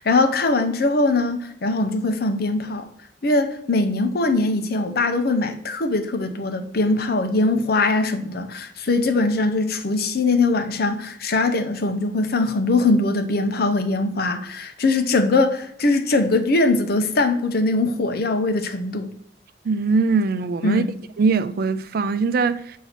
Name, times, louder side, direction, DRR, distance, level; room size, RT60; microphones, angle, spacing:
voice 1, 0.0-2.9 3.2-19.1 20.6-20.9, left 2 dB, 60° left, 0.7 m, -21 dB
voice 2, 19.6-20.8 21.2-22.8, right 4 dB, 60° right, 0.4 m, -21 dB
7.0 x 2.8 x 5.7 m
head